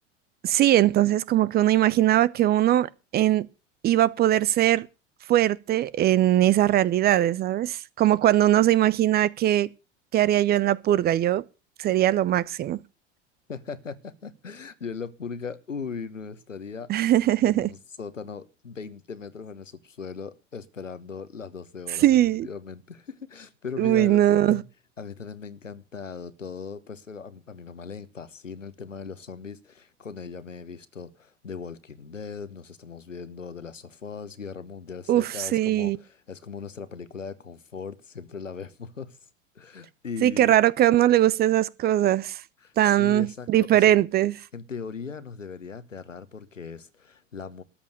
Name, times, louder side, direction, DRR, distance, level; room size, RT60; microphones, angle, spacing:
voice 1, 0.4-3.5 3.8-4.9 5.3-9.7 10.1-11.4 11.8-12.8 16.9-17.7 22.0-22.5 23.8-24.6 35.1-36.0 40.2-42.4 42.8-44.4, right 13 dB, 25° right, 0.6 m, -21 dB
voice 2, 13.5-16.9 17.4-22.2 22.4-24.6 25.0-39.2 39.5-40.5 42.6-44.0 44.5-47.6, left 5 dB, 85° left, 1.1 m, -39 dB
13.5 x 8.6 x 6.6 m
figure-of-eight pair, 80°, 37 cm